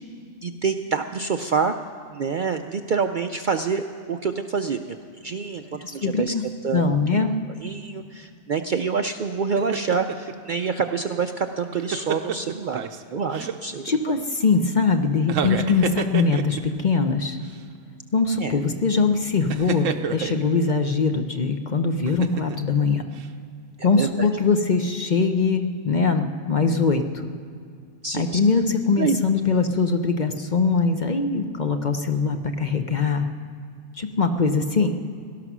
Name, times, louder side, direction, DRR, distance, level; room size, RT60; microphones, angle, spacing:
voice 1, 0.4-1.7 2.1-5.0 5.2-5.6 5.9-6.3 6.6-6.9 7.2-7.3 7.6-12.8 13.1-13.8 18.4-18.5 23.8-24.3 28.0-28.4 29.0-29.2, right 5 dB, 55° right, 7 dB, 0.6 m, -26 dB
voice 2, 5.8-6.4 6.7-7.3 13.8-17.4 18.1-23.0 23.8-27.3 28.1-33.3 34.0-34.9, left 4 dB, 45° left, 6 dB, 0.8 m, -22 dB
sound 1, 9.6-10.3 11.5-13.0 13.3-14.0 15.2-16.8 17.4-17.6 19.5-20.5 22.0-22.7 23.1-23.3, right 7 dB, 90° right, 1.1 m, -29 dB
18.0 x 12.0 x 6.1 m, 2.3 s
omnidirectional pair, 1.3 m